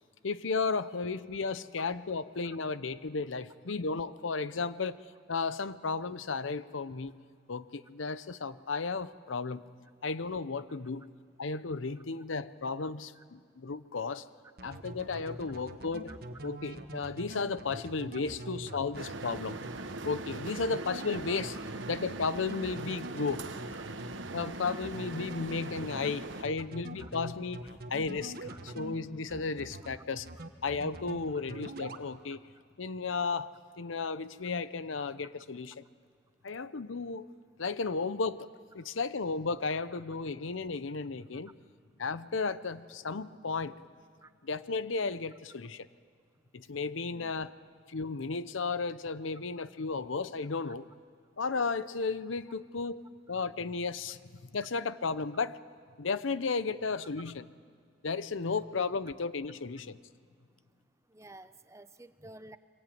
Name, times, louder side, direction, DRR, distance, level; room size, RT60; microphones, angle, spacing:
voice 1, 0.2-5.0 5.3-7.1 7.5-9.6 10.0-11.1 11.4-14.2 14.6-16.1 16.4-19.6 20.0-21.6 21.9-23.4 24.3-30.3 30.6-32.4 32.8-33.5 33.8-35.8 36.4-37.3 37.6-38.5 38.7-41.5 42.0-43.8 44.4-45.9 46.5-47.5 47.9-50.9 51.4-53.0 53.3-54.2 54.5-55.6 56.0-57.4 58.0-60.0, left 4 dB, 90° left, 15 dB, 0.7 m, -34 dB
sound 1, 14.6-28.9 29.3-29.9 30.3-31.2 31.5-32.0, right 1 dB, 50° right, 1.4 m, -44 dB
sound 2, 18.9-26.4, right 2 dB, 80° right, 1.2 m, -41 dB
voice 2, 61.1-62.6, right 2 dB, 15° right, 12 dB, 0.7 m, -52 dB
23.0 x 19.5 x 9.3 m, 2.1 s
head